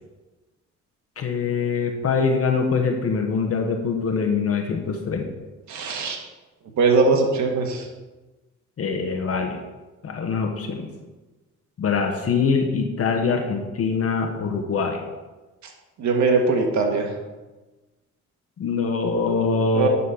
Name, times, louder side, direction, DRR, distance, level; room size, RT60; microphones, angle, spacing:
voice 1, 1.2-5.3 8.8-9.6 10.0-10.9 11.8-15.0 18.6-19.9, left 5 dB, 50° left, 3 dB, 1.1 m, -23 dB
voice 2, 5.7-6.2 6.8-7.8 16.0-17.1 19.7-19.9, right 4 dB, 70° right, 1 dB, 1.6 m, -20 dB
9.7 x 4.2 x 5.5 m, 1.2 s
cardioid pair, 90°, 30 cm